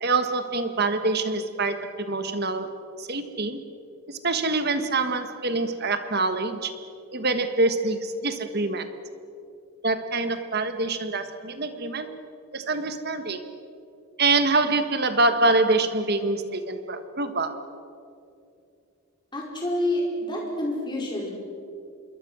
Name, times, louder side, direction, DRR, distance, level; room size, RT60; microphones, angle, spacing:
voice 1, 0.0-3.6 4.1-6.8 7.1-8.9 9.8-12.1 12.5-13.4 14.2-17.7, right 3 dB, 45° right, 9 dB, 1.5 m, -25 dB
voice 2, 19.3-21.3, left 1 dB, 20° left, -2 dB, 5.0 m, -28 dB
26.5 x 22.0 x 6.3 m, 2.6 s
head